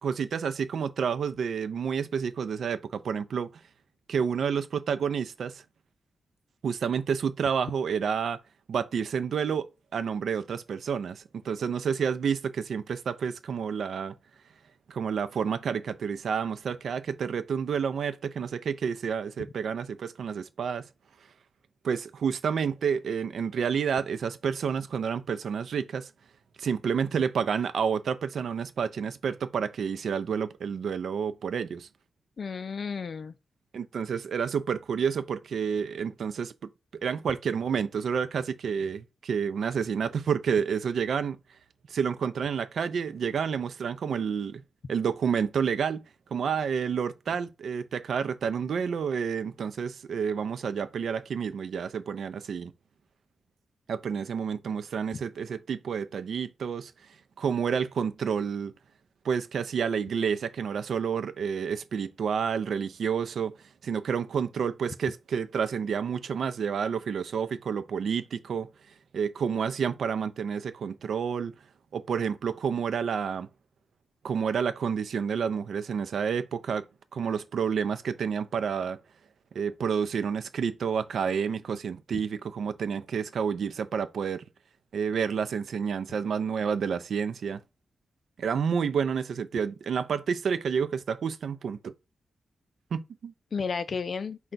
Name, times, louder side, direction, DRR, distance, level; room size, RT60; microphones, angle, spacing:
voice 1, 0.0-3.5 4.1-5.6 6.6-8.4 8.7-14.1 14.9-20.9 21.8-26.1 26.6-31.9 33.7-36.5 37.0-41.4 41.9-44.6 44.9-46.0 46.3-52.7 53.9-56.9 57.4-58.7 59.2-63.5 63.8-68.7 69.1-71.5 71.9-73.5 74.2-76.8 77.1-79.0 79.5-84.4 84.9-87.6 88.4-91.9 92.9-93.3, right 6 dB, 75° right, 0.4 m, -29 dB
voice 2, 32.4-33.3 93.5-94.5, left 5 dB, 55° left, 0.4 m, -33 dB
4.4 x 2.2 x 3.9 m
cardioid pair, 90°, 0 cm